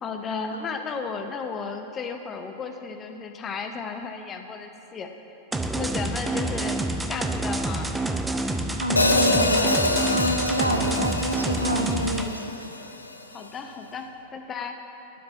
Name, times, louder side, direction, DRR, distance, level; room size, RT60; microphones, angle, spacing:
voice 1, 0.0-5.1 5.7-6.8 7.0-7.9 13.3-14.8, left 5 dB, 25° left, 5 dB, 0.8 m, -34 dB
sound 1, 5.5-12.3, right 2 dB, 10° right, 0.5 m, -28 dB
voice 2, 8.7-12.7, equal, 85° right, 3 dB, 0.8 m, -27 dB
Hi-hat, 9.0-13.1, left 2 dB, 80° left, 0.6 m, -26 dB
9.6 x 7.4 x 7.0 m, 2.9 s
figure-of-eight pair, 90°, 0 cm